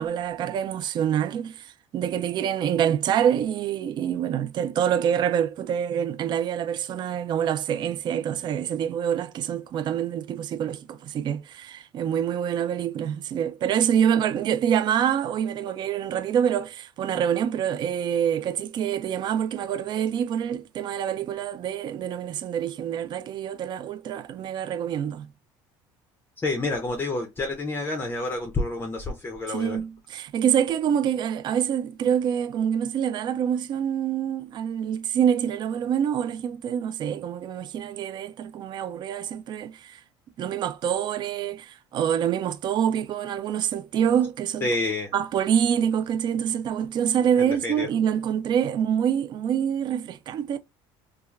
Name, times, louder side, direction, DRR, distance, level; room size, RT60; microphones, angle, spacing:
voice 1, 0.0-25.3 29.5-40.0 40.4-44.7 45.1-50.6, right 9 dB, 45° right, 0.3 m, -26 dB
voice 2, 26.4-29.8 44.6-45.1 47.4-47.9, left 2 dB, 20° left, 0.5 m, -28 dB
3.1 x 2.3 x 2.3 m
cardioid pair, 120°, 11 cm